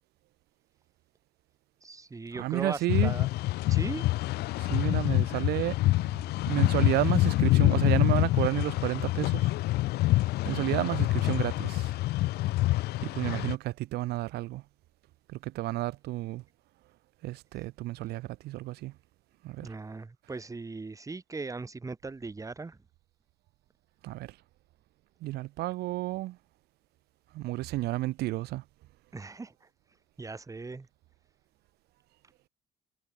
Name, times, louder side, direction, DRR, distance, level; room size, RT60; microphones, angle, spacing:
voice 1, 1.8-3.3 3.7-4.1 19.6-22.8 29.1-29.7 30.2-30.9, right 3 dB, 20° right, 3.0 m, -39 dB
voice 2, 2.4-3.1 4.6-5.8 6.5-9.5 10.1-11.9 13.0-14.6 15.4-16.4 17.2-18.9 19.4-19.7 24.0-24.3 25.2-26.4 27.3-28.6, right 17 dB, 70° right, 0.5 m, -31 dB
sound 1, 2.9-13.5, left 18 dB, 75° left, 0.5 m, -26 dB
cardioid pair, 110°, 17 cm